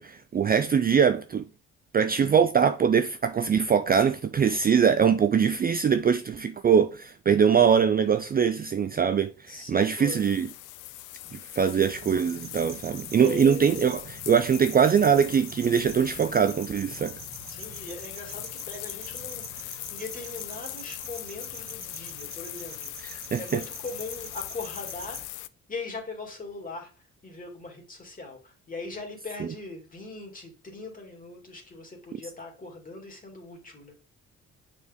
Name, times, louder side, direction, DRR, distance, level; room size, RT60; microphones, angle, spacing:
voice 1, 0.0-1.4 1.9-10.5 11.3-17.1 23.1-23.6, right 7 dB, 30° right, 0.4 m, -22 dB
voice 2, 9.5-10.3 13.2-13.9 17.5-25.2 25.7-33.9, left 3 dB, 30° left, 2.5 m, -40 dB
sound 1, 9.8-25.5, left 16 dB, 85° left, 0.5 m, -40 dB
sound 2, 11.8-25.3, right 7 dB, 65° right, 1.1 m, -46 dB
6.9 x 4.3 x 3.6 m
cardioid pair, 90°, 30 cm